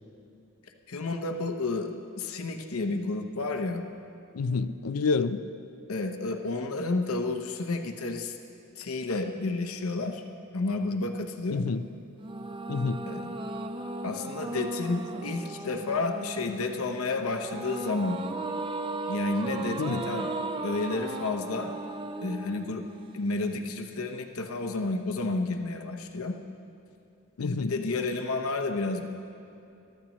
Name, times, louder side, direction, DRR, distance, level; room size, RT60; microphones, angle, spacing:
voice 1, 0.9-3.8 5.9-8.4 8.8-10.2 10.5-11.6 13.1-13.3 14.0-18.2 19.1-20.3 20.6-21.7 22.2-22.9 23.1-26.4 27.4-29.1, left 3 dB, 70° left, 5 dB, 0.9 m, -31 dB
voice 2, 4.3-5.4 11.5-11.8 12.7-13.1 19.8-20.1 27.4-27.7, left 4 dB, 90° left, 12 dB, 0.5 m, -28 dB
sound 1, 12.2-23.6, right 2 dB, 25° right, 0.5 m, -36 dB
22.0 x 13.5 x 3.1 m, 2.7 s
head